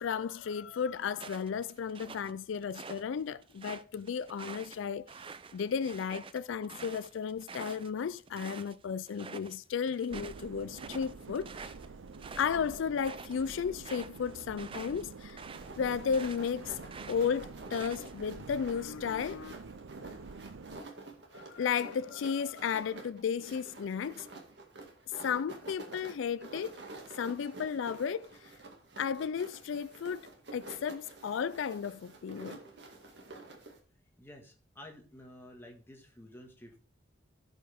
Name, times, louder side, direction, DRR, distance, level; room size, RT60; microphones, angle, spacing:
voice 1, 0.0-5.1 5.5-11.7 12.4-15.4 15.8-16.8 17.1-19.5 21.3-24.3 25.2-26.8 27.1-28.5 29.0-32.6, left 7 dB, 75° left, 0.4 m, -34 dB
sound 1, 1.1-3.0 3.4-8.8 9.1-9.6 9.9-16.5 16.9-18.3, right 5 dB, 25° right, 0.4 m, -47 dB
sound 2, 10.1-20.8, right 4 dB, 85° right, 0.6 m, -48 dB
sound 3, 15.5-33.8, right 2 dB, 60° right, 2.0 m, -49 dB
voice 2, 34.2-36.8, left 1 dB, 10° left, 1.7 m, -51 dB
16.0 x 5.4 x 3.5 m
head